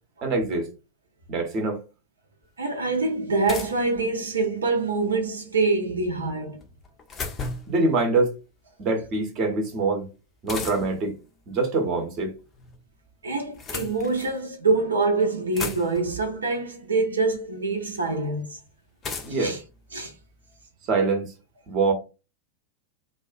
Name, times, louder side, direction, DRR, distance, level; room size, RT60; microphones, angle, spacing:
voice 1, 0.2-0.7 1.3-1.8 7.7-8.3 8.8-10.1 10.4-11.1 11.5-12.3 19.2-19.5 20.8-21.3 21.7-21.9, right 3 dB, 35° right, 0.7 m, -24 dB
sound 1, 2.4-2.5 3.5-4.6 6.6-7.8 10.5-11.1 12.2-12.8 13.4-14.4 15.0-15.1 15.3-16.2 17.3-17.4 19.0-20.6, left 4 dB, 25° left, 0.5 m, -36 dB
voice 2, 2.6-6.6 13.2-18.6 19.4-19.6 19.9-20.1, right 3 dB, 70° right, 0.5 m, -25 dB
2.4 x 2.2 x 2.4 m
figure-of-eight pair, 90°, 0 cm